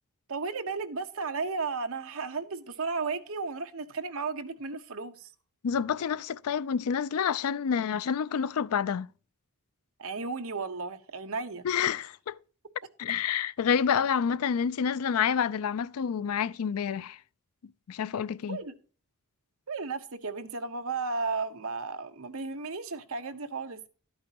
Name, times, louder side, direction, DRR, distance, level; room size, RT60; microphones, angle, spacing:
voice 1, 0.3-5.3 10.0-11.7 18.5-18.8 19.7-23.9, right 4 dB, 65° right, 1.0 m, -34 dB
voice 2, 5.6-9.1 11.6-12.4 13.0-17.2 17.9-18.6, left 7 dB, 75° left, 0.4 m, -28 dB
12.0 x 8.7 x 2.9 m
head